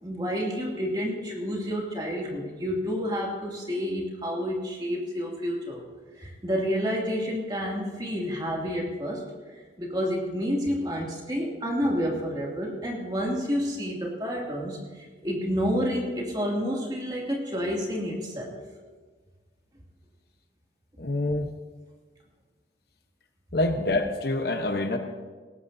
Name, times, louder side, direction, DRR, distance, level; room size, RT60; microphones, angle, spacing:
voice 1, 0.0-5.8 6.2-9.2 9.5-18.6, equal, 20° right, -2 dB, 2.5 m, -29 dB
voice 2, 21.0-21.5 23.5-25.0, left 2 dB, 55° left, 5 dB, 1.0 m, -26 dB
18.5 x 17.0 x 2.7 m, 1.4 s
head